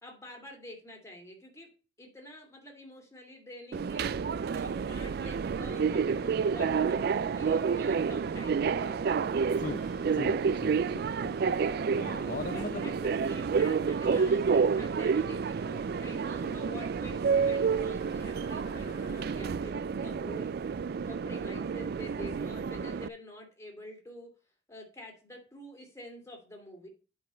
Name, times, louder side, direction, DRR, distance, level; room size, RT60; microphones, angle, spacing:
voice 1, 0.0-1.7 2.0-4.1 4.5-9.3 11.6-12.0 12.5-20.5 21.1-24.3 24.7-26.9, left 1 dB, 15° left, 1 dB, 2.7 m, -47 dB
Subway metro underground, 3.7-23.1, right 5 dB, 55° right, 0.3 m, -29 dB
sound 1, 9.5-19.3, left 3 dB, 70° left, 1.9 m, -57 dB
voice 2, 10.1-11.4 11.9-12.9 14.0-14.2, left 3 dB, 45° left, 8 dB, 0.6 m, -40 dB
10.0 x 5.5 x 4.4 m, 0.34 s
head